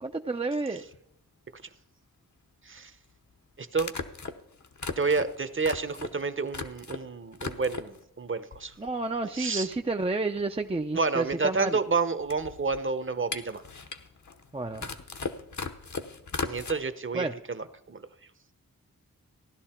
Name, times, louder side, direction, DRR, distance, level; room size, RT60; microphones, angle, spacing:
voice 1, 0.0-0.8 8.8-11.8 14.5-14.9 17.1-17.3, right 3 dB, 20° right, 5 dB, 0.5 m, -30 dB
sound 1, 0.9-1.0 2.8-2.9 3.7-7.0 7.3-8.0 8.5-9.2 9.4-9.5 9.7-16.7, left 4 dB, 60° left, 1.1 m, -38 dB
voice 2, 3.6-3.9 5.0-8.7 9.3-9.7 10.9-13.6 16.5-18.1, right 4 dB, 40° right, 12 dB, 0.8 m, -30 dB
16.0 x 11.5 x 4.4 m, 0.74 s
wide cardioid pair, 105°, 33 cm